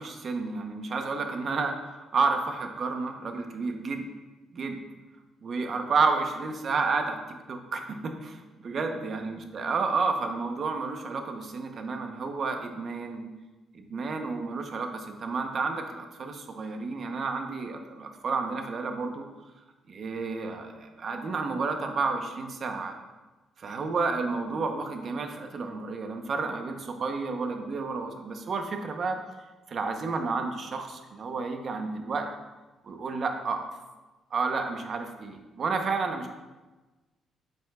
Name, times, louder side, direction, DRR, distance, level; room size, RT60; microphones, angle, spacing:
voice 1, 0.0-4.0 4.5-4.8 5.4-13.2 13.7-19.2 19.9-23.0 23.6-29.2 29.7-32.3 32.8-33.7 34.3-36.3, right 4 dB, 50° right, 5 dB, 0.8 m, -31 dB
7.8 x 6.9 x 2.4 m, 1.2 s
cardioid pair, 90°, 0 cm